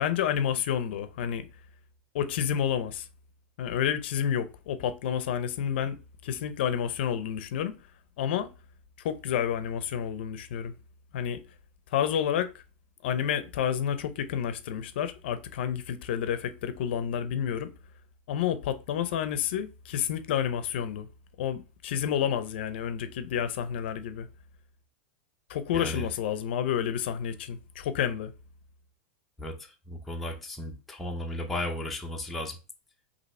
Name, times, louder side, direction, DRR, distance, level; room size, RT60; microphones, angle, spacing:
voice 1, 0.0-1.5 2.1-3.1 3.6-6.0 6.2-7.7 8.2-8.5 9.0-10.7 11.1-11.4 11.9-12.6 13.0-17.7 18.3-21.1 21.4-24.3 25.5-28.3, left 9 dB, 60° left, 0.5 m, -29 dB
voice 2, 25.7-26.1 29.4-32.6, left 1 dB, 5° left, 0.5 m, -35 dB
5.3 x 2.8 x 3.1 m
supercardioid pair, 175°, 6 cm